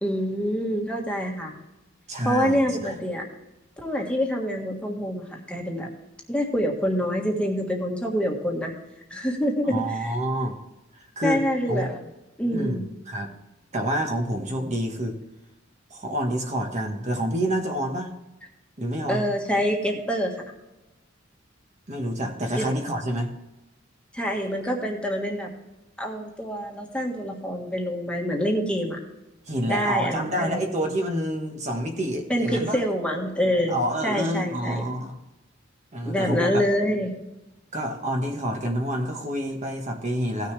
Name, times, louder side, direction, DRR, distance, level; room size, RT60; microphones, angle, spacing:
voice 1, 0.0-1.5 2.2-3.2 3.8-5.9 6.3-8.7 9.1-10.1 11.2-12.0 12.4-12.8 19.1-20.3 22.6-22.7 24.1-25.5 26.0-29.0 29.7-30.6 32.3-33.7 34.0-34.8 36.0-37.1, equal, 5° left, 0 dB, 1.5 m, -26 dB
voice 2, 2.1-3.0 9.6-10.6 11.0-11.4 11.7-11.9 12.5-12.8 13.1-13.3 13.7-15.2 15.9-18.1 18.8-19.3 21.9-23.3 29.5-32.8 33.7-35.2 35.9-36.6 37.7-40.5, equal, 35° right, 2 dB, 1.3 m, -28 dB
16.5 x 6.6 x 3.3 m, 0.99 s
head